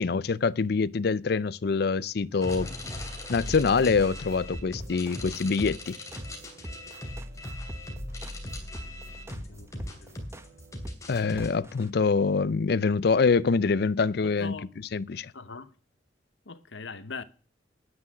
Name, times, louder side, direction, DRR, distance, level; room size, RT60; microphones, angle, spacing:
voice 1, 0.0-2.7 3.3-6.0 11.1-14.5 14.9-15.3, left 4 dB, 60° left, 0.5 m, -25 dB
sound 1, 2.3-11.0, right 1 dB, 70° right, 2.5 m, -54 dB
sound 2, 2.4-11.5, left 1 dB, 20° left, 3.0 m, -39 dB
sound 3, 3.5-11.9, equal, 15° right, 1.0 m, -43 dB
voice 2, 9.4-10.2 14.2-14.7 15.3-15.7 16.5-17.2, left 4 dB, 80° left, 1.0 m, -41 dB
9.9 x 9.6 x 6.2 m
head